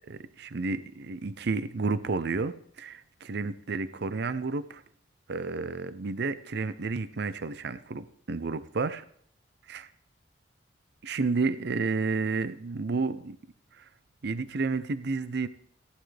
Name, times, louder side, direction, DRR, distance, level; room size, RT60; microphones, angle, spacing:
voice 1, 0.1-4.8 5.3-9.0 9.7-9.9 11.0-13.4 13.7-13.9 14.2-15.5, right 4 dB, 60° right, 14 dB, 0.6 m, -31 dB
14.0 x 11.0 x 3.4 m, 0.62 s
head